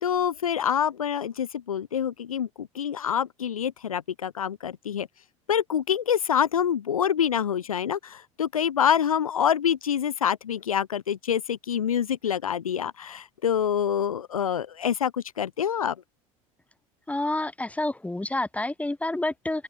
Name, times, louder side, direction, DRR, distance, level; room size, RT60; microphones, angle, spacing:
voice 1, 0.0-5.1 5.5-16.0, left 8 dB, 85° left, 0.4 m, -26 dB
voice 2, 17.1-19.6, left 2 dB, 10° left, 4.9 m, -29 dB
figure-of-eight pair, 70°, 17 cm